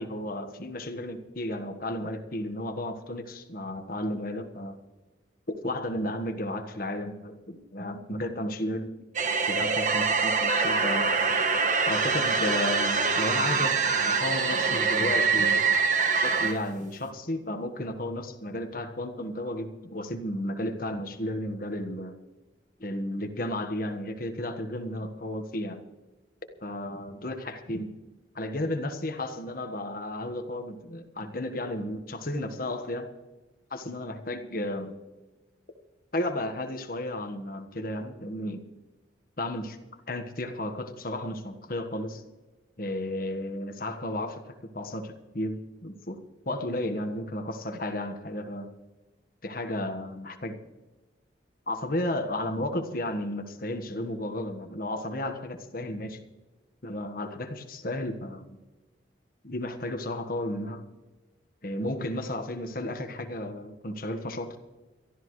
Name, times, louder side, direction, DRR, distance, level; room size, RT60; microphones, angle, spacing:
voice 1, 0.0-4.7 5.6-8.9 9.5-11.1 11.9-15.6 16.1-22.1 22.8-25.8 26.6-27.9 28.3-33.1 33.7-35.0 36.1-38.6 39.4-39.8 40.1-42.2 42.8-46.2 46.4-48.7 49.4-50.5 51.7-56.2 56.8-58.6 59.4-60.8 61.6-64.6, left 1 dB, 50° left, 6 dB, 1.4 m, -33 dB
sound 1, 9.1-16.6, right 4 dB, 40° right, 1.3 m, -24 dB
23.0 x 13.0 x 3.2 m, 1.2 s
head